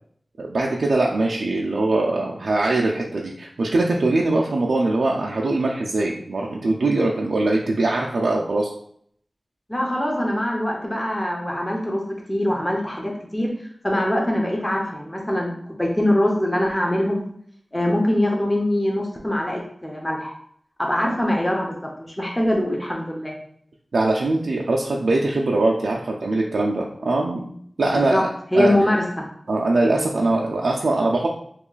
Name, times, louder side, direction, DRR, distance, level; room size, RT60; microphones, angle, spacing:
voice 1, 0.4-8.7 23.9-27.4 27.8-28.3 28.5-28.7 29.5-31.3, right 2 dB, 90° right, -2 dB, 0.3 m, -22 dB
voice 2, 9.7-17.2 17.7-20.4 20.8-23.3 27.9-28.2 28.5-29.3, left 1 dB, 20° left, 0 dB, 0.7 m, -23 dB
3.0 x 2.3 x 3.8 m, 0.64 s
wide cardioid pair, 45°, 0 cm